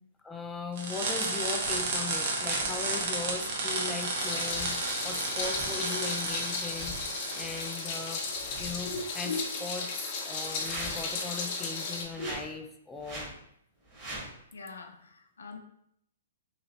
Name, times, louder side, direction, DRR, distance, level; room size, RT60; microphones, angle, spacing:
voice 1, 0.2-4.7 5.0-7.0 7.3-8.3 8.6-9.3 9.6-13.3, left 4 dB, 10° left, 3 dB, 0.3 m, -38 dB
sound 1, 0.8-8.0, right 3 dB, 50° right, 0.8 m, -32 dB
sound 2, 1.6-1.9 2.4-2.7 4.4-4.7 5.5-5.7 6.7-7.1 8.2-9.0 10.4-11.1 12.0-12.5 13.0-13.4 13.8-14.3, right 1 dB, 30° right, 1.2 m, -42 dB
Meow, 4.2-12.0, left 4 dB, 40° left, 0.8 m, -35 dB
voice 2, 8.8-9.5 12.2-12.3 14.5-15.6, left 2 dB, 80° left, 5 dB, 0.5 m, -38 dB
3.1 x 2.8 x 2.7 m, 0.73 s
hypercardioid pair, 125°, 0 cm